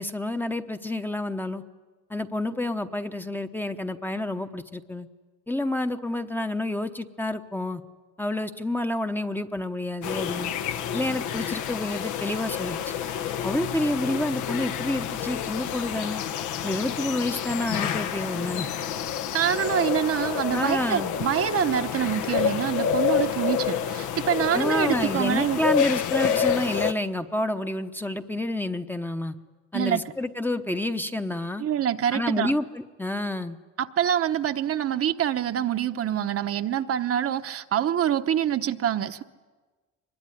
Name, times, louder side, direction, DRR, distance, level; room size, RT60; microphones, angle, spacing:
voice 1, 0.0-1.6 2.1-5.1 5.5-7.8 8.2-10.5 10.9-12.8 13.4-16.2 16.6-18.7 20.5-21.1 24.5-29.3 29.7-31.6 32.1-33.6, left 1 dB, 5° left, 0.8 m, -29 dB
sound 1, 10.0-26.9, left 8 dB, 85° left, 1.2 m, -28 dB
voice 2, 19.3-25.6 29.7-30.0 31.6-32.5 33.8-39.2, right 10 dB, 50° right, 0.9 m, -26 dB
24.5 x 21.5 x 9.8 m
cardioid pair, 140°, 29 cm